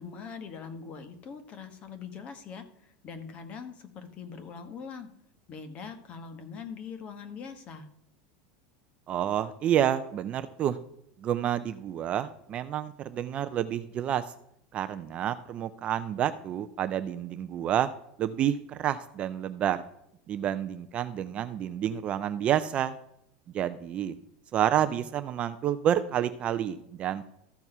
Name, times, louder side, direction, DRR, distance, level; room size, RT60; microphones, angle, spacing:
voice 1, 0.0-2.6 3.0-5.1 5.5-7.9, left 6 dB, 25° left, 9 dB, 1.2 m, -42 dB
voice 2, 9.1-10.8 11.2-14.2 14.7-17.9 18.2-19.8 20.3-22.9 23.5-24.2 24.5-27.3, right 10 dB, 25° right, 11 dB, 0.4 m, -29 dB
13.5 x 4.6 x 5.4 m, 0.76 s
supercardioid pair, 170°, 4 cm